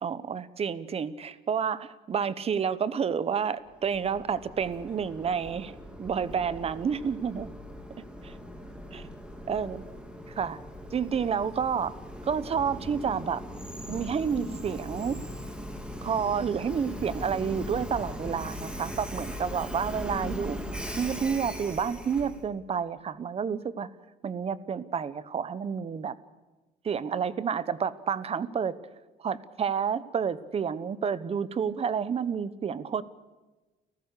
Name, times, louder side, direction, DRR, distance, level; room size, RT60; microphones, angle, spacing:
voice 1, 0.0-7.5 8.2-8.3 8.9-9.0 9.5-9.8 10.3-10.6 10.9-11.9 12.2-13.4 13.9-15.2 16.0-20.6 21.0-23.9 24.2-26.1 26.8-28.7 29.2-33.0, right 7 dB, 35° right, 16 dB, 1.1 m, -30 dB
Train, 3.7-22.5, equal, 5° right, 2.9 m, -39 dB
30.0 x 15.0 x 6.7 m, 1.2 s
cardioid pair, 110°, 17 cm